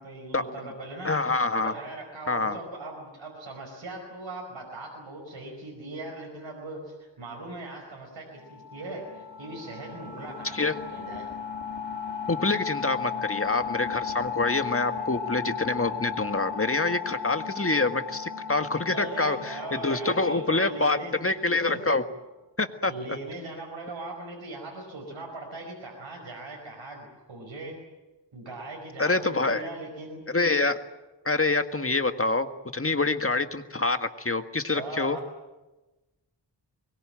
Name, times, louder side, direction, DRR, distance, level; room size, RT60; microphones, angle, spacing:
voice 1, 0.0-1.1 1.6-11.3 18.9-21.1 21.6-21.9 22.9-27.8 28.3-30.2 34.7-35.2, right 2 dB, 90° right, 0 dB, 5.2 m, -39 dB
voice 2, 1.0-1.7 2.3-2.6 10.5-10.8 12.3-22.0 22.6-22.9 29.0-29.6 30.3-30.8 31.3-32.5 32.7-35.2, left 3 dB, 30° left, 8 dB, 1.7 m, -26 dB
sound 1, 8.4-21.9, left 6 dB, 70° left, 2.2 m, -36 dB
24.0 x 21.5 x 8.9 m, 1.1 s
wide cardioid pair, 65°, 45 cm